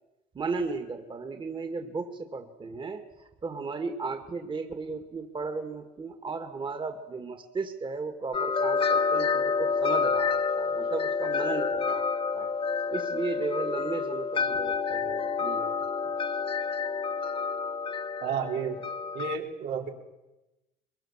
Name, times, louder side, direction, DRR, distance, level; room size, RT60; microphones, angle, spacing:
voice 1, 0.3-12.5 12.9-15.8 16.0-16.1, right 4 dB, 30° right, 6 dB, 2.0 m, -35 dB
sound 1, 8.3-19.4, left 5 dB, 30° left, 1.5 m, -28 dB
voice 2, 18.2-18.8 19.1-19.9, right 7 dB, 85° right, 0 dB, 3.9 m, -31 dB
23.5 x 22.0 x 7.3 m, 1.0 s
cardioid pair, 110°, 17 cm